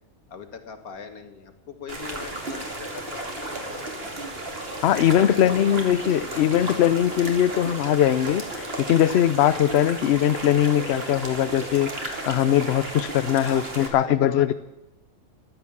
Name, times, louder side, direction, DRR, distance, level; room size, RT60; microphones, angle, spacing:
voice 1, 0.3-4.3 4.9-7.1 13.4-14.5, left 5 dB, 80° left, 2.1 m, -41 dB
sound 1, 1.9-13.9, right 2 dB, 45° right, 2.6 m, -34 dB
voice 2, 4.8-14.5, left 11 dB, 60° left, 0.8 m, -21 dB
14.0 x 12.0 x 7.2 m
omnidirectional pair, 1.5 m